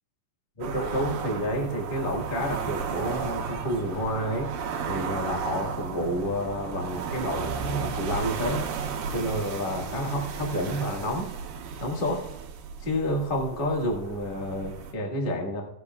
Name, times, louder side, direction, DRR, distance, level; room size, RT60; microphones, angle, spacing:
voice 1, 0.6-4.5 4.9-8.6 9.1-11.3 11.8-12.2 12.8-15.6, equal, 60° left, 0 dB, 0.5 m, -29 dB
sound 1, 0.6-14.9, right 6 dB, 75° right, 2.6 m, -34 dB
18.0 x 8.2 x 2.4 m, 0.82 s
omnidirectional pair, 4.2 m